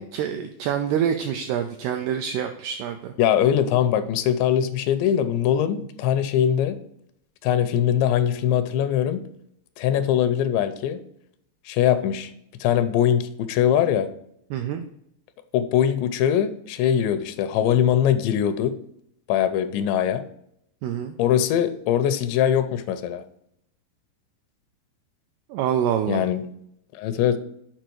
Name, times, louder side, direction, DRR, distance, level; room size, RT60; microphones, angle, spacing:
voice 1, 0.0-3.1 14.5-14.8 20.8-21.2 25.5-26.2, right 9 dB, 85° right, 6 dB, 2.2 m, -26 dB
voice 2, 3.2-6.8 7.4-9.2 9.8-11.0 11.7-12.3 12.6-14.1 15.5-18.7 19.3-20.2 21.2-23.2 26.1-26.4 26.9-27.4, left 10 dB, 85° left, 10 dB, 2.8 m, -22 dB
7.9 x 5.0 x 4.5 m, 0.72 s
omnidirectional pair, 5.2 m